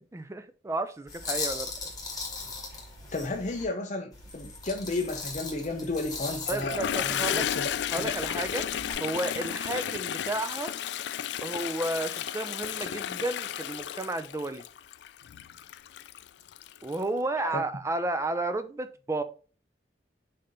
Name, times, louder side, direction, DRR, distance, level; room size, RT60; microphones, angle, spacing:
voice 1, 0.0-1.7 6.5-7.4 7.9-8.7 9.0-10.7 11.4-14.6 16.8-19.2, right 2 dB, 15° right, 0.4 m, -32 dB
sound 1, 1.1-3.6 4.1-8.9, left 3 dB, 20° left, 2.0 m, -39 dB
voice 2, 3.1-7.7 8.0-8.1 17.4-17.6, left 2 dB, 40° left, 0.8 m, -33 dB
Toilet flush, 6.5-17.0, left 10 dB, 70° left, 0.3 m, -33 dB
6.7 x 2.8 x 5.1 m
head